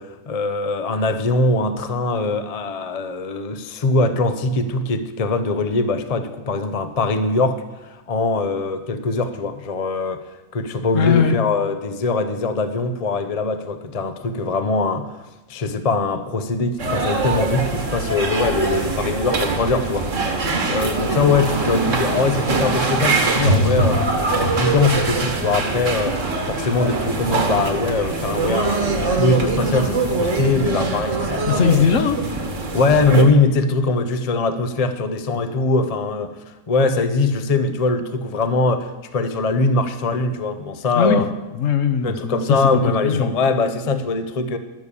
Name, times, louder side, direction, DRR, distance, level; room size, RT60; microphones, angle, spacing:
voice 1, 0.0-10.2 10.5-20.1 20.7-24.0 24.3-26.2 26.5-31.4 32.7-36.3 36.7-41.3 42.0-44.6, left 3 dB, 35° left, 9 dB, 0.6 m, -22 dB
voice 2, 10.9-11.4 31.5-32.2 41.0-41.2 41.5-42.6 43.0-43.4, left 7 dB, 60° left, 9 dB, 1.1 m, -19 dB
sound 1, 16.8-33.2, right 3 dB, 50° right, 1.8 m, -22 dB
12.0 x 6.9 x 8.2 m, 1.0 s
omnidirectional pair, 1.7 m